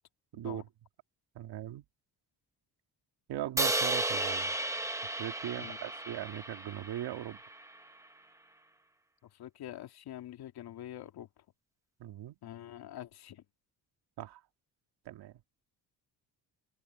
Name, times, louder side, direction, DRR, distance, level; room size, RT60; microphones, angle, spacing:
voice 1, 0.3-0.6 5.6-5.8 9.2-11.4 12.4-13.4, left 12 dB, 70° left, 2.5 m, -46 dB
voice 2, 1.4-1.8 3.3-4.5 5.2-7.4 12.0-12.4 14.2-14.4 15.1-15.3, right 12 dB, 80° right, 2.2 m, -39 dB
Crash cymbal, 3.6-7.8, right 2 dB, 10° right, 0.8 m, -34 dB
open air
cardioid pair, 175°, 39 cm